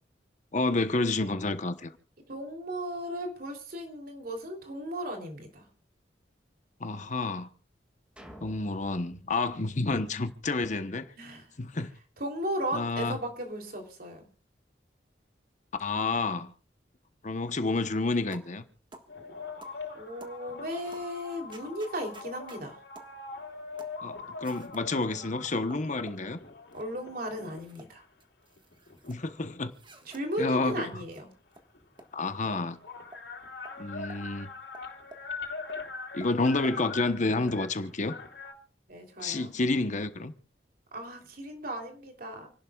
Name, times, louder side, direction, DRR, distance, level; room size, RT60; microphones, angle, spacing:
voice 1, 0.5-1.9 6.8-7.5 8.4-11.1 11.6-11.9 12.7-13.2 15.8-16.5 17.2-18.6 24.0-26.4 29.1-29.7 30.4-30.9 32.1-32.8 33.8-34.5 36.1-38.1 39.2-40.3, left 3 dB, 45° left, 1.0 m, -29 dB
voice 2, 2.3-5.6 11.2-11.5 12.2-14.3 19.9-22.8 26.7-28.0 30.0-31.3 38.9-39.5 40.9-42.5, equal, 55° right, 3.4 m, -36 dB
sound 1, 8.2-10.6, equal, 5° right, 2.3 m, -52 dB
sound 2, 18.3-18.5 18.9-19.1 19.6-19.8 20.2-20.4 20.9-21.1 21.5-22.6 23.0-23.1 23.8-24.0 24.4-24.9 25.5-26.2 26.7-27.0 27.4-27.9 28.2-29.2 29.7-30.2 30.7-30.8 31.1-31.2 31.5-31.6 32.0-32.1 32.5-32.7 33.1-33.2 33.7-33.8 34.1-34.2 34.7-35.3 35.7-35.8 36.2-36.3 36.6-36.8, right 2 dB, 30° right, 1.6 m, -51 dB
sound 3, 19.1-27.9 28.6-30.3 31.5-31.6 31.7-38.5, left 4 dB, 75° left, 3.4 m, -43 dB
28.5 x 11.5 x 2.4 m
head